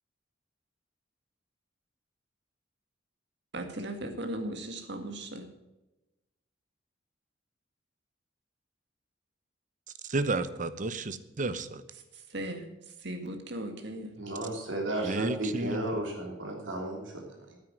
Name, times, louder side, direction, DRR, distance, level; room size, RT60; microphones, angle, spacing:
voice 1, 3.5-5.5 12.1-12.7 13.0-14.1, right 1 dB, 65° right, 1.9 m, -37 dB
voice 2, 10.1-11.8 15.1-15.8, right 2 dB, 45° right, 0.8 m, -31 dB
voice 3, 14.2-17.6, right 1 dB, 80° right, 3.3 m, -34 dB
9.4 x 9.0 x 7.5 m
head